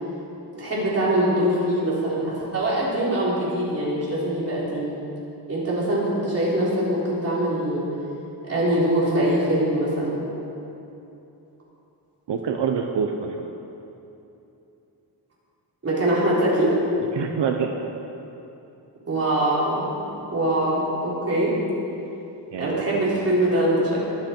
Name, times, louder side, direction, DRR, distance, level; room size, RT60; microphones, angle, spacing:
voice 1, 0.5-4.9 5.5-7.9 8.4-10.2 15.8-16.7 19.1-20.0 20.3-21.5 22.6-24.0, right 1 dB, 35° right, -7 dB, 3.7 m, -23 dB
voice 2, 12.3-13.5 17.1-17.7 22.5-23.1, right 6 dB, 85° right, 3 dB, 0.9 m, -26 dB
22.0 x 7.8 x 4.5 m, 2.9 s
wide cardioid pair, 170°, 41 cm